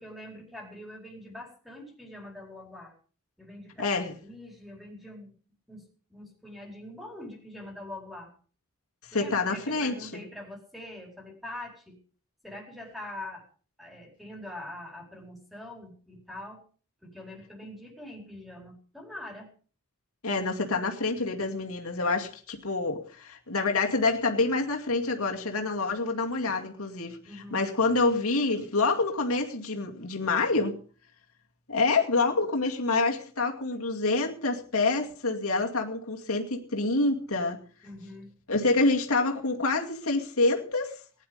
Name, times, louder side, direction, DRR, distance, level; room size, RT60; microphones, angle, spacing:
voice 1, 0.0-2.9 3.4-5.3 5.7-8.3 9.1-12.0 12.4-13.4 13.8-16.6 17.0-19.5 27.3-27.6 37.8-38.3, left 1 dB, ahead, 4.4 m, -44 dB
voice 2, 3.8-4.1 9.0-10.2 20.2-27.2 27.5-30.8 31.7-37.6 38.5-41.0, left 3 dB, 80° left, 2.3 m, -27 dB
19.5 x 10.5 x 5.2 m
head